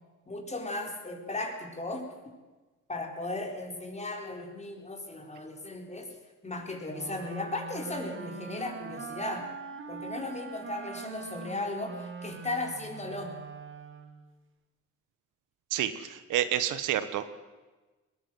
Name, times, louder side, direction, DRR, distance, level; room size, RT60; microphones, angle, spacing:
voice 1, 0.3-2.1 2.9-6.1 6.4-9.5 9.9-13.3, left 2 dB, 20° left, 3 dB, 4.5 m, -36 dB
Wind instrument woodwind instrument, 6.9-14.3, right 5 dB, 40° right, 2.5 m, -42 dB
voice 2, 15.7-17.3, right 11 dB, 85° right, 12 dB, 1.4 m, -29 dB
21.0 x 18.5 x 7.7 m, 1.2 s
cardioid pair, 90°, 30 cm